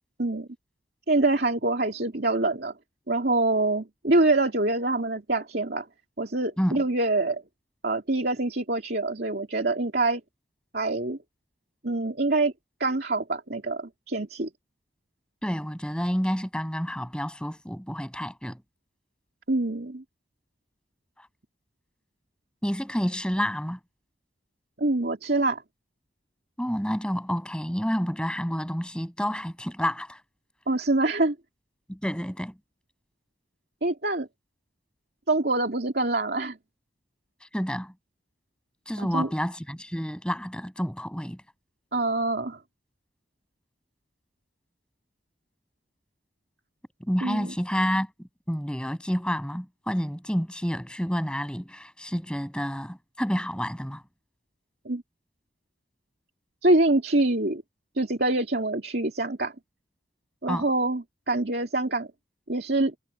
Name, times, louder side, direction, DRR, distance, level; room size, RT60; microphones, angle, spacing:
voice 1, 1.1-2.7 3.1-5.9 6.2-7.4 7.8-10.2 10.7-11.2 11.8-12.5 12.8-14.5 19.5-20.0 24.8-25.6 30.7-31.3 33.8-34.3 35.3-36.6 39.0-39.3 41.9-42.6 47.2-47.5 54.8-55.0 56.6-57.6 58.0-59.5 60.4-62.1 62.5-62.9, right 2 dB, 60° right, 2.8 m, -25 dB
voice 2, 15.4-18.6 21.2-21.3 22.6-23.8 26.6-30.2 31.9-32.5 37.5-37.9 38.9-41.4 47.0-54.0 60.5-60.7, equal, 5° left, 7.1 m, -29 dB
head